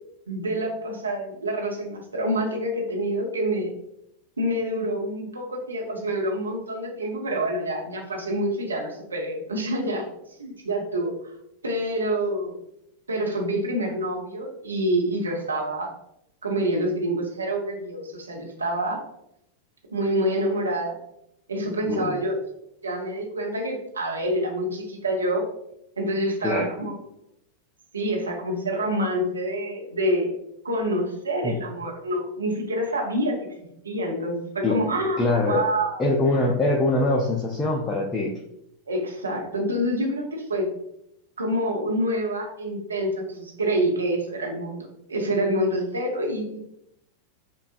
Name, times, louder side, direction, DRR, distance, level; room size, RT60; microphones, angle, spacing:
voice 1, 0.3-3.7 4.4-10.1 10.4-11.1 11.6-12.6 13.1-15.9 16.4-19.0 19.9-21.0 21.5-22.4 22.8-25.4 26.0-26.9 27.9-30.3 30.6-33.5 33.8-35.2 35.5-36.0 38.9-40.7 41.4-46.6, right 1 dB, 75° right, 0 dB, 0.9 m, -27 dB
voice 2, 21.9-22.2 26.4-26.7 31.4-31.6 34.6-35.6 36.0-38.3, left 2 dB, 15° left, -2 dB, 0.6 m, -23 dB
6.8 x 2.4 x 2.5 m, 0.80 s
figure-of-eight pair, 90°, 0 cm